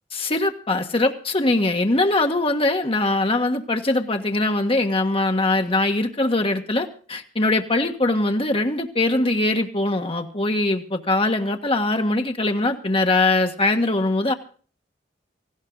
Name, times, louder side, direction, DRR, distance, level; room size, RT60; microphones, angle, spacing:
voice 1, 0.1-14.3, left 2 dB, 30° left, 5 dB, 1.6 m, -22 dB
18.0 x 16.0 x 4.0 m, 0.42 s
head